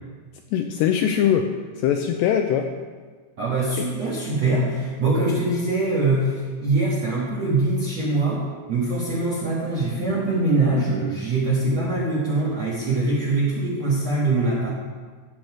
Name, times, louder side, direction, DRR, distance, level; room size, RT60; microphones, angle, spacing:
voice 1, 0.5-2.7 3.8-3.9, left 9 dB, 85° left, 5 dB, 2.5 m, -22 dB
voice 2, 3.4-14.7, right 2 dB, 65° right, -6 dB, 1.6 m, -23 dB
15.5 x 7.9 x 4.8 m, 1.5 s
omnidirectional pair, 5.5 m